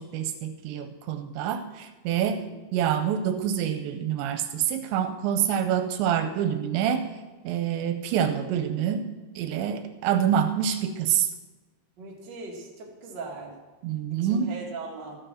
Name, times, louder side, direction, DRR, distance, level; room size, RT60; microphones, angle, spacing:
voice 1, 0.0-2.4 2.7-7.1 7.4-9.1 9.4-11.3 13.8-14.5, right 9 dB, 80° right, 8 dB, 2.9 m, -26 dB
voice 2, 12.0-13.6 14.1-15.2, right 3 dB, 40° right, -2 dB, 1.7 m, -39 dB
14.0 x 7.0 x 6.3 m, 1.2 s
omnidirectional pair, 5.2 m